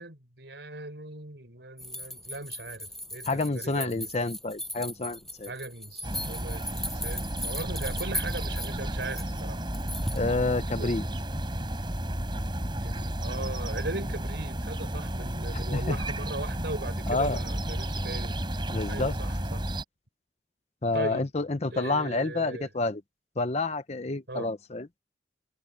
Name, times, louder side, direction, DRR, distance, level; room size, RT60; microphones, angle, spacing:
voice 1, 0.0-4.1 5.5-9.6 10.8-11.1 12.8-19.7 20.9-21.3 21.7-22.7 24.3-24.5, right 2 dB, 70° right, 5.3 m, -39 dB
sound 1, 1.8-10.3, left 1 dB, ahead, 6.2 m, -38 dB
voice 2, 3.2-5.5 10.1-11.0 15.5-16.0 17.1-17.4 18.7-19.1 20.8-23.0 23.4-24.9, left 3 dB, 35° left, 0.8 m, -29 dB
sound 2, 6.0-19.8, right 1 dB, 25° right, 4.1 m, -32 dB
head